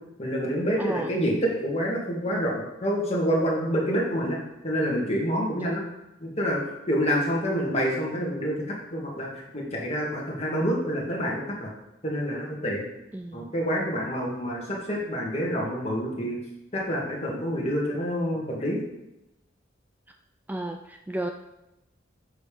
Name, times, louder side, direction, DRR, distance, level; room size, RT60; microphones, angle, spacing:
voice 1, 0.2-4.4 4.6-5.8 6.2-6.6 6.9-11.7 12.0-12.9 13.3-16.4 16.7-18.8, equal, 35° left, -3 dB, 2.0 m, -27 dB
voice 2, 0.8-1.1 13.1-13.5 20.5-21.3, right 1 dB, 10° right, 5 dB, 0.3 m, -33 dB
8.1 x 5.3 x 5.0 m, 0.91 s
head